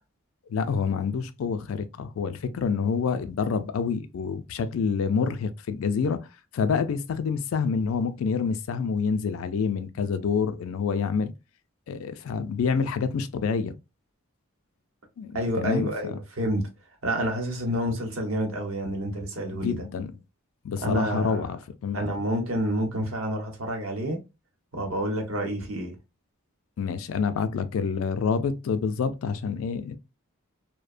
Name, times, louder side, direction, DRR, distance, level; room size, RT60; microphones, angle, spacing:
voice 1, 0.5-6.2 6.5-11.3 11.9-13.8 15.2-16.2 19.5-20.1 20.6-22.0 26.8-30.0, left 5 dB, 75° left, 0.3 m, -27 dB
voice 2, 15.3-16.7 17.0-19.8 20.8-21.5 21.9-24.2 24.7-25.9, equal, 75° right, 0.9 m, -28 dB
2.7 x 2.1 x 2.4 m
head